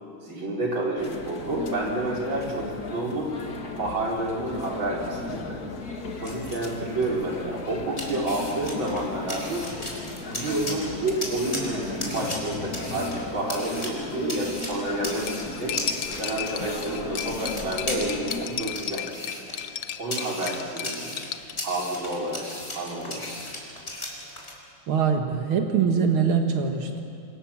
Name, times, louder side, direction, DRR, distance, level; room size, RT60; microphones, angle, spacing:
voice 1, 0.2-3.3 3.7-5.6 6.2-9.6 10.2-15.8 16.2-19.1 20.0-21.2 21.6-23.3, right 1 dB, 70° right, -3 dB, 5.2 m, -29 dB
sound 1, 1.0-18.4, left 3 dB, 50° left, 2.3 m, -37 dB
sound 2, 6.0-24.6, left 1 dB, 30° left, 4.5 m, -37 dB
Cutlery silverware, 15.3-21.5, left 9 dB, 65° left, 1.6 m, -34 dB
voice 2, 24.9-27.0, right 6 dB, 90° right, 4 dB, 2.4 m, -23 dB
27.5 x 25.0 x 7.3 m, 2.5 s
omnidirectional pair, 2.2 m